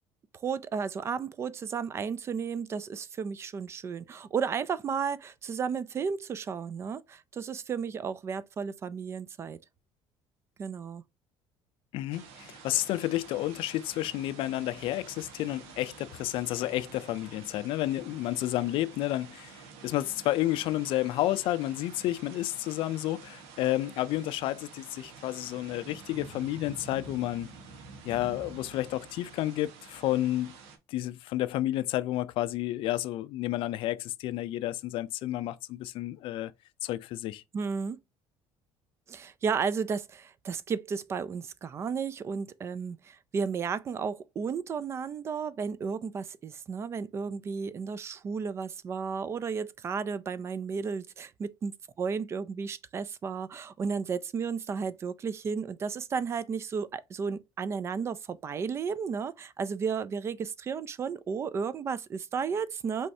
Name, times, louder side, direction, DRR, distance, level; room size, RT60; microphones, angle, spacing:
voice 1, 0.4-9.6 10.6-11.0 37.5-38.0 39.1-63.1, right 6 dB, 25° right, 0.3 m, -33 dB
voice 2, 11.9-27.5 28.0-30.5 30.9-36.5 36.8-37.4, left 15 dB, 60° left, 0.4 m, -31 dB
sound 1, 12.1-30.8, right 5 dB, 85° right, 1.2 m, -49 dB
5.4 x 3.2 x 2.7 m
cardioid pair, 160°, 10 cm